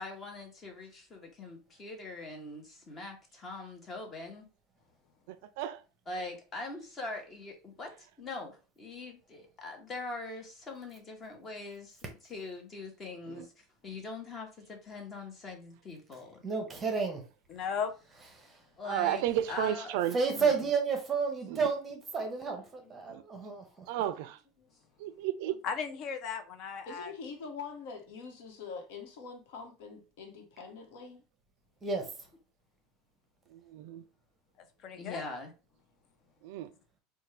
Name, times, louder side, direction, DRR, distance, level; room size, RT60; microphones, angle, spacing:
voice 1, 0.0-4.5 6.1-12.0 12.3-16.4 18.8-19.2 19.5-19.9 20.3-20.6 22.5-23.2 24.6-24.7 25.4-25.5 34.9-35.5, left 3 dB, 20° left, 0.9 m, -43 dB
voice 2, 16.4-17.2 18.4-18.6 20.1-23.9 31.8-32.1, right 5 dB, 20° right, 0.8 m, -31 dB
voice 3, 17.5-17.9 25.6-27.1 34.8-35.2, left 6 dB, 40° left, 0.5 m, -36 dB
voice 4, 18.9-20.2 21.5-21.6 23.1-23.2 23.9-24.4 25.0-25.6 33.5-34.0 36.4-36.7, right 12 dB, 65° right, 0.3 m, -32 dB
voice 5, 26.9-31.2, left 5 dB, 75° left, 1.0 m, -44 dB
4.3 x 2.2 x 3.2 m
supercardioid pair, 160°, 0 cm